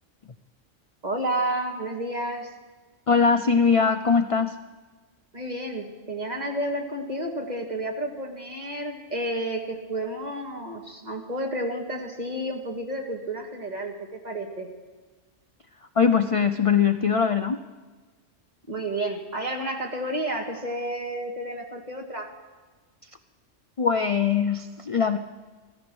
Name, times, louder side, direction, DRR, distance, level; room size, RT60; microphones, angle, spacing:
voice 1, 1.0-2.5 5.3-14.7 18.7-22.3, right 1 dB, 35° right, 1 dB, 2.1 m, -31 dB
voice 2, 3.1-4.5 16.0-17.6 23.8-25.2, left 6 dB, 50° left, 9 dB, 0.4 m, -21 dB
15.5 x 14.0 x 6.2 m, 1.3 s
omnidirectional pair, 1.3 m